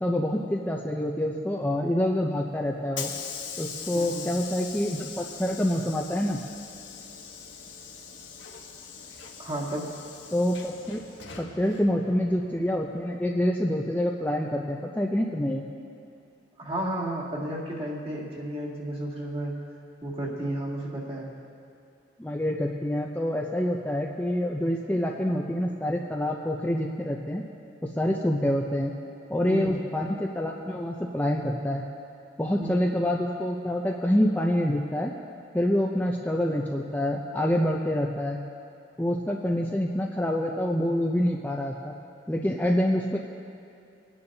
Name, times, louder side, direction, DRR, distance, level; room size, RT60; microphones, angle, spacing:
voice 1, 0.0-3.1 3.6-6.4 10.3-11.0 11.4-15.6 22.2-27.4 27.8-28.9 29.3-31.8 32.4-35.1 35.5-38.4 39.0-41.9 42.3-43.2, left 1 dB, 10° left, -1 dB, 0.6 m, -26 dB
Hiss / Sliding door, 2.2-13.1, left 6 dB, 85° left, 1.2 m, -42 dB
voice 2, 3.9-4.3 9.4-9.9 16.6-19.5 20.0-21.3 29.4-29.8 32.6-32.8, right 1 dB, 30° right, -5 dB, 2.2 m, -32 dB
23.0 x 9.6 x 2.8 m, 2.6 s
head